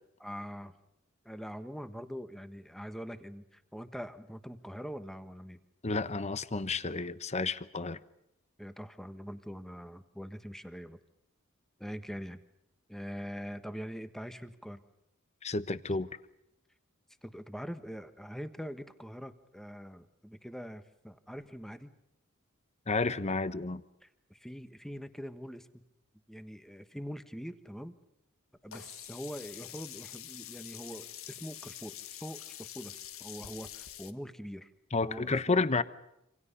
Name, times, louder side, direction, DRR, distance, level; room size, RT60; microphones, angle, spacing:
voice 1, 0.2-0.7 1.2-5.6 8.6-11.0 11.8-12.4 12.9-14.8 17.2-21.9 24.0-25.8 26.3-27.9 28.6-31.9 32.2-34.7 35.0-35.6, equal, ahead, 1.4 m, -43 dB
voice 2, 5.8-8.0 15.4-16.1 22.9-23.8 34.9-35.8, left 3 dB, 35° left, 1.0 m, -31 dB
Sink (filling or washing), 28.7-34.1, left 11 dB, 85° left, 1.6 m, -46 dB
27.5 x 27.0 x 5.5 m
head